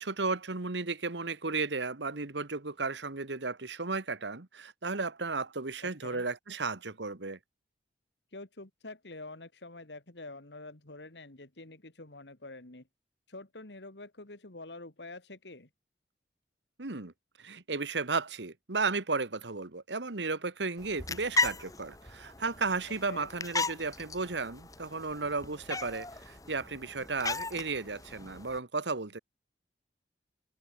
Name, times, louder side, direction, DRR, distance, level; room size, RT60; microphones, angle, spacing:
voice 1, 0.0-7.4 16.8-17.1 17.4-29.2, right 4 dB, 85° right, 1.6 m, -34 dB
voice 2, 5.8-6.2 8.3-12.9 13.3-15.7 23.1-23.3, left 2 dB, 80° left, 2.5 m, -47 dB
sound 1, 20.8-28.6, left 3 dB, 20° left, 2.7 m, -36 dB
head